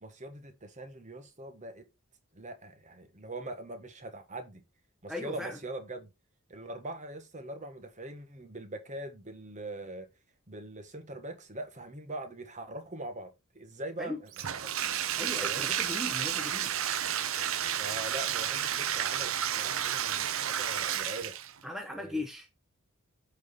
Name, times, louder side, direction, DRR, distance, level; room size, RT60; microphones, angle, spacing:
voice 1, 0.0-1.9 2.3-4.6 5.0-6.1 6.5-10.1 10.5-14.9 15.4-15.7 17.8-21.3 21.9-22.2, right 2 dB, 35° right, 1.4 m, -42 dB
voice 2, 5.1-5.6 14.0-14.2 15.2-16.7 21.6-22.6, left 2 dB, ahead, 0.9 m, -38 dB
Bathtub (filling or washing), 14.3-21.6, right 10 dB, 65° right, 0.7 m, -31 dB
8.2 x 4.3 x 4.2 m
head